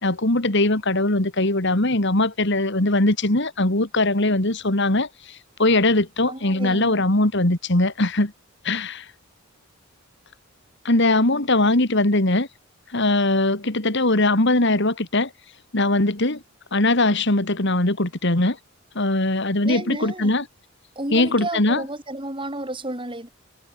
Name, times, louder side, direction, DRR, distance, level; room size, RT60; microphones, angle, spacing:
voice 1, 0.0-8.3 8.6-9.1 10.8-12.5 12.9-15.3 15.7-16.4 16.7-18.6 18.9-20.4 21.1-21.8, left 2 dB, 55° left, 2.8 m, -21 dB
voice 2, 6.3-7.0 19.6-20.3 20.9-23.3, right 1 dB, 25° right, 6.7 m, -32 dB
head